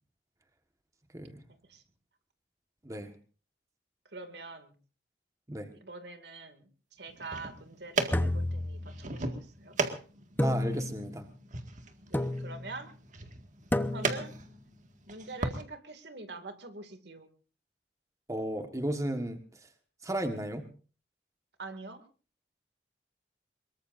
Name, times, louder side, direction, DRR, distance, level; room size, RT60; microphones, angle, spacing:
voice 1, 4.1-4.7 5.7-9.8 12.1-12.9 13.9-14.4 15.1-17.3 21.6-22.0, right 3 dB, 70° right, 8 dB, 2.4 m, -44 dB
sound 1, 7.1-15.6, right 3 dB, 45° right, 1.9 m, -37 dB
sound 2, 8.1-9.3 10.4-11.2 12.1-12.8 13.7-14.4, left 1 dB, 10° left, 1.0 m, -31 dB
voice 2, 10.4-11.2 18.3-19.4 20.0-20.7, right 1 dB, 20° right, 6 dB, 1.5 m, -34 dB
24.0 x 22.0 x 2.6 m, 0.37 s
head